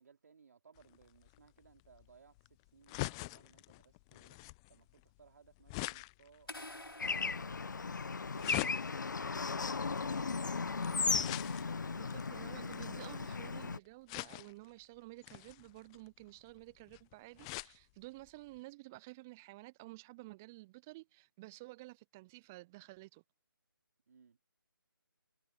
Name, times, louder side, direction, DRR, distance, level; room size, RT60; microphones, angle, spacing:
voice 1, 0.0-4.4 4.7-10.3 24.1-24.4, right 6 dB, 45° right, 3.9 m, -64 dB
sound 1, 0.8-13.4 14.1-14.7 15.2-17.8 18.2-18.3 18.6-18.7, left 26 dB, 15° left, 0.9 m, -45 dB
sound 2, 6.5-8.6, left 2 dB, 80° left, 2.9 m, -50 dB
Bird / Traffic noise roadway noise, 7.0-13.8, left 4 dB, 55° left, 1.0 m, -36 dB
voice 2, 11.9-23.2, right 22 dB, 5° right, 0.3 m, -52 dB
figure-of-eight pair, 150°, 12 cm